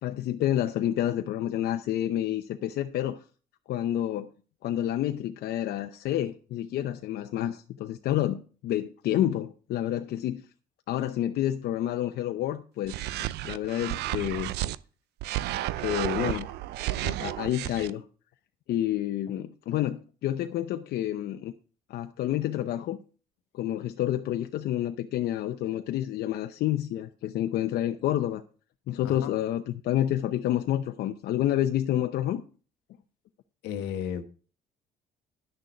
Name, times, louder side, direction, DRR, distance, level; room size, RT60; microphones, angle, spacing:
voice 1, 0.0-3.2 3.7-4.3 4.6-10.4 10.9-13.0 13.4-14.5 15.8-16.6 17.0-18.0 18.7-21.5 21.9-23.0 23.5-28.4 28.9-32.4, left 12 dB, 70° left, 0.8 m, -29 dB
sound 1, 12.8-14.8 15.2-17.9, right 15 dB, 80° right, 0.5 m, -32 dB
voice 2, 33.6-34.2, left 8 dB, 90° left, 1.3 m, -33 dB
10.5 x 6.5 x 5.7 m
cardioid pair, 110°, 17 cm